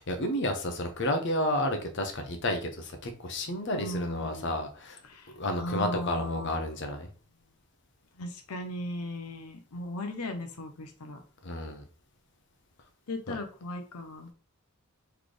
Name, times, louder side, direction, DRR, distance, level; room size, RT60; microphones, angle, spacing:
voice 1, 0.0-5.0 5.4-7.1 11.4-11.8 13.3-13.4, left 1 dB, 55° left, 5 dB, 0.8 m, -31 dB
voice 2, 3.7-4.5 5.0-6.6 8.2-11.2 13.1-14.3, left 1 dB, 90° left, 5 dB, 0.7 m, -37 dB
4.0 x 3.3 x 3.3 m, 0.38 s
head